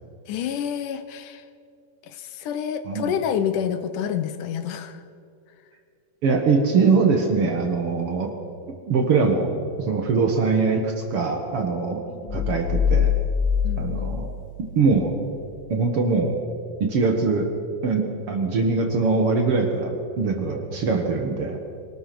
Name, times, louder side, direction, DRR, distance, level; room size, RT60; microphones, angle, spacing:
voice 1, 0.3-1.4 2.0-5.0 12.1-12.5 13.6-14.1, left 8 dB, 75° left, 10 dB, 2.3 m, -29 dB
voice 2, 6.2-8.3 8.9-9.5 9.8-12.0 12.3-13.1 13.8-14.3 14.6-15.1 15.7-16.4 16.8-17.5 17.8-21.6, right 4 dB, 50° right, 3 dB, 2.1 m, -22 dB
sound 1, 12.3-15.0, left 7 dB, 25° left, 4.8 m, -24 dB
24.5 x 18.5 x 6.0 m, 2.4 s
omnidirectional pair, 3.9 m